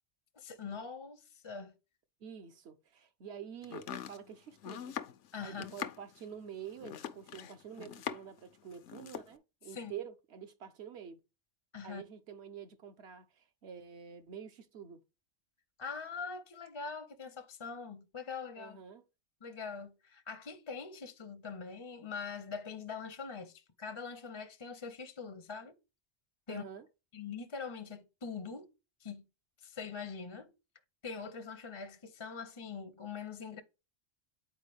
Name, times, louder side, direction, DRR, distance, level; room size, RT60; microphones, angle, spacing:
voice 1, 0.3-1.7 5.3-5.7 9.7-9.9 11.7-12.0 15.8-18.8 19.4-25.8 26.5-26.6 27.1-28.7 29.0-29.2 29.6-30.5 31.0-33.6, left 5 dB, 35° left, 0.5 m, -43 dB
voice 2, 2.2-5.0 5.4-11.2 11.8-15.0 18.6-19.0 26.5-26.9, right 8 dB, 65° right, 1.0 m, -47 dB
Domestic sounds home sounds, 3.6-8.4 8.7-9.3, left 10 dB, 85° left, 1.0 m, -43 dB
8.1 x 4.5 x 3.3 m
omnidirectional pair, 1.2 m